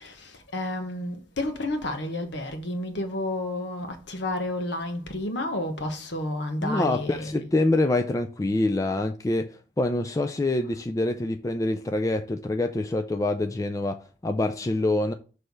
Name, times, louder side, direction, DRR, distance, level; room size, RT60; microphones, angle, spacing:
voice 1, 0.0-7.5, left 1 dB, 65° left, 1.2 m, -31 dB
voice 2, 6.6-15.1, left 2 dB, 15° left, 0.3 m, -26 dB
6.4 x 3.3 x 5.2 m
head